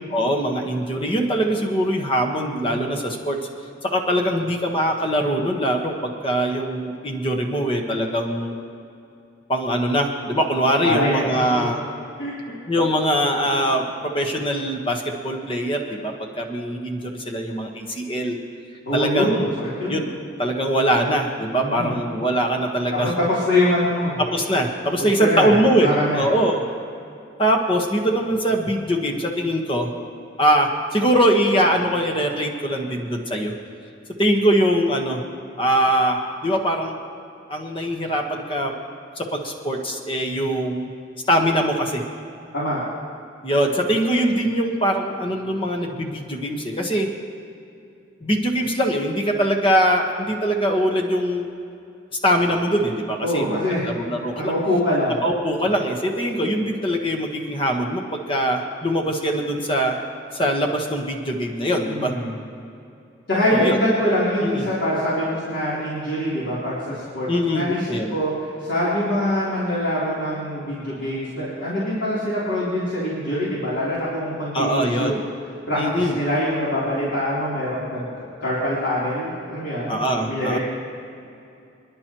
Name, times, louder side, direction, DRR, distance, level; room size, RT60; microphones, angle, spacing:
voice 1, 0.1-3.4 3.8-8.5 9.5-11.8 12.7-18.4 18.9-19.5 19.9-20.1 20.4-23.1 24.3-26.6 27.4-29.9 30.4-33.5 34.2-35.2 35.6-37.0 37.5-38.7 39.2-40.9 41.3-42.0 43.4-47.1 48.2-51.5 52.2-54.5 55.2-60.0 60.3-62.1 63.5-63.8 64.4-64.7 67.3-68.2 74.5-75.1 75.7-76.1 79.9-80.6, equal, 25° left, 2 dB, 1.3 m, -22 dB
voice 2, 10.8-11.7 12.2-12.3 18.8-20.0 21.6-22.0 22.9-24.2 25.2-26.2 42.5-42.9 53.2-53.9 54.1-55.2 61.9-62.3 63.3-75.2 75.7-80.6, left 1 dB, 70° left, -9 dB, 3.5 m, -24 dB
27.0 x 11.0 x 3.1 m, 2.6 s
head